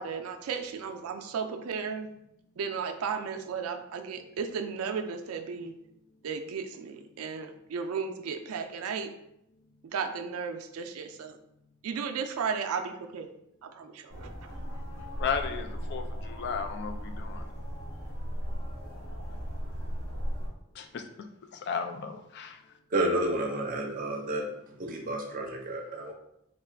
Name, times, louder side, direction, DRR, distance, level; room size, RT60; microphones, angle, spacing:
voice 1, 0.0-2.1 2.6-5.7 6.2-9.1 9.8-11.4 11.8-13.3 13.6-14.3, right 6 dB, 90° right, 7 dB, 0.4 m, -34 dB
sound 1, 14.1-20.5, equal, 75° left, 1.5 m, -36 dB
voice 2, 15.2-17.4 20.8-22.6, left 6 dB, 50° left, 7 dB, 0.3 m, -35 dB
voice 3, 22.9-24.5 24.8-26.1, right 1 dB, 40° right, 1 dB, 0.6 m, -30 dB
3.7 x 2.3 x 3.3 m, 0.80 s
head